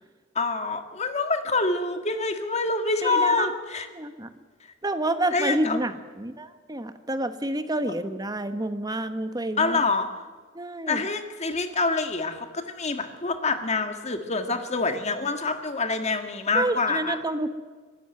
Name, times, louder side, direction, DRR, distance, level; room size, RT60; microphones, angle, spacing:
voice 1, 0.3-3.9 5.3-5.8 9.6-10.1 10.9-17.2, left 3 dB, 30° left, 7 dB, 1.8 m, -26 dB
voice 2, 3.0-3.6 3.9-4.3 4.8-9.8 10.5-11.1 16.5-17.5, right 1 dB, 20° right, 9 dB, 1.2 m, -28 dB
24.0 x 13.0 x 9.4 m, 1.4 s
head